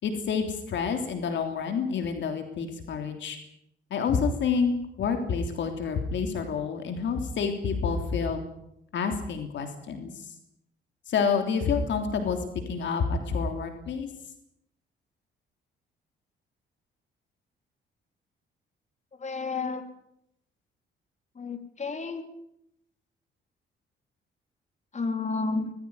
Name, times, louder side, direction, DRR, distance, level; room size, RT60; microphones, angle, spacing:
voice 1, 0.0-3.4 3.9-8.4 8.9-10.3 11.1-12.4 12.7-14.1, left 5 dB, 65° left, 5 dB, 3.2 m, -28 dB
voice 2, 19.2-19.8 21.4-22.2 24.9-25.7, left 3 dB, 35° left, 7 dB, 3.5 m, -31 dB
20.0 x 15.5 x 9.6 m, 0.79 s
cardioid pair, 90°, 20 cm